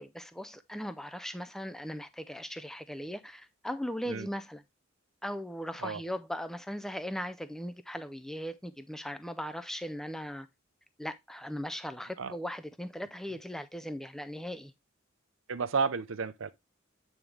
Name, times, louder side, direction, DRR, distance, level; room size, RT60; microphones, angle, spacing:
voice 1, 0.0-4.6 5.2-10.5 11.0-14.7, equal, ahead, 0.4 m, -38 dB
voice 2, 15.5-16.5, right 5 dB, 75° right, 0.6 m, -32 dB
8.9 x 3.6 x 3.3 m
head